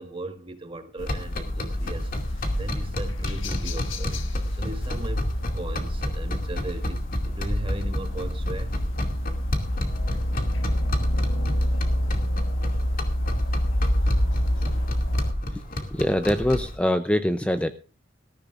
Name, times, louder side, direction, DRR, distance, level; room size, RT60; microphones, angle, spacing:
voice 1, 0.0-8.9 11.5-11.9 13.9-14.9, right 1 dB, 25° right, 6 dB, 1.7 m, -38 dB
sound 1, 1.0-15.3, equal, 75° left, 1.5 m, -27 dB
sound 2, 1.0-16.8, left 1 dB, 45° left, 2.4 m, -32 dB
voice 2, 15.9-17.7, left 1 dB, 5° left, 9 dB, 0.6 m, -23 dB
20.0 x 14.5 x 2.5 m, 0.35 s
head